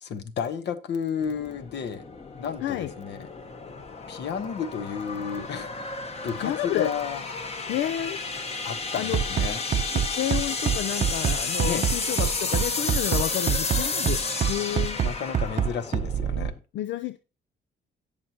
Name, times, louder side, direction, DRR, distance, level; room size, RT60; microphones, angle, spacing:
voice 1, 0.0-2.0 2.4-3.3 4.1-5.7 6.2-7.2 8.6-9.6 11.6-11.9 15.0-16.5, left 7 dB, 65° left, 1.2 m, -32 dB
sound 1, 1.2-16.6, left 3 dB, 35° left, 1.3 m, -32 dB
voice 2, 6.4-6.9 7.7-8.2 9.0-9.2 9.8-15.0 16.7-17.2, left 12 dB, 85° left, 0.5 m, -30 dB
Bass drum, 9.1-16.5, right 8 dB, 45° right, 0.6 m, -25 dB
17.5 x 6.2 x 2.9 m
cardioid pair, 120°, 19 cm